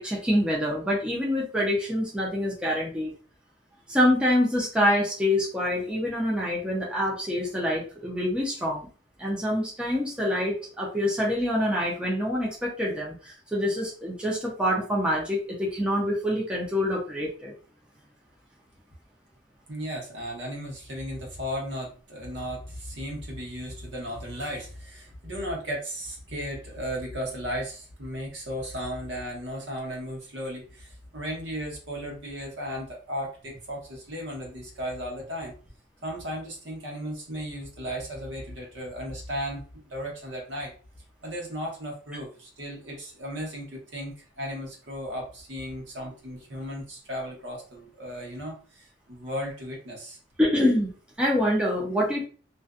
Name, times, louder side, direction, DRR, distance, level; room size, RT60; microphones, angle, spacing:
voice 1, 0.0-3.1 3.9-8.9 9.2-17.5 50.4-50.9 51.2-52.3, left 1 dB, 5° right, -4 dB, 0.5 m, -26 dB
voice 2, 19.7-35.5 36.0-40.7 41.2-50.2, equal, 65° right, -1 dB, 0.9 m, -35 dB
2.5 x 2.2 x 2.4 m, 0.38 s
head